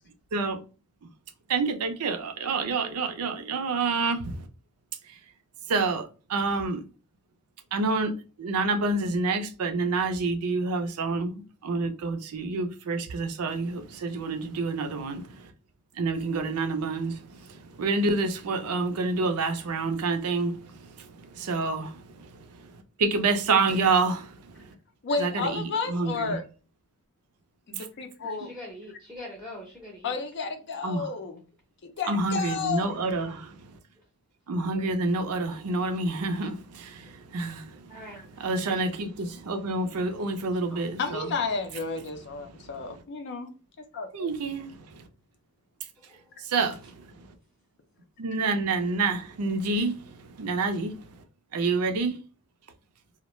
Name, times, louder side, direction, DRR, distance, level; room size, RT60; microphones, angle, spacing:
voice 1, 1.5-4.5 5.1-5.2 5.7-6.8 7.7-15.5 15.9-24.8 25.2-26.4 27.8-27.9 28.4-28.5 30.8-31.1 32.1-33.8 34.5-41.3 42.5-43.0 44.1-45.1 46.4-47.3 48.2-51.2 51.5-52.2, right 3 dB, 75° right, 0.5 m, -28 dB
voice 2, 25.0-26.4 27.7-28.5 30.0-31.4 31.8-33.0 41.0-43.5 43.9-44.3, left 4 dB, 55° left, 0.4 m, -32 dB
voice 3, 28.2-30.2 37.4-37.5 37.9-38.2 39.9-40.3 40.7-41.0 46.0-46.4, left 1 dB, ahead, 0.6 m, -44 dB
2.3 x 2.1 x 2.9 m
head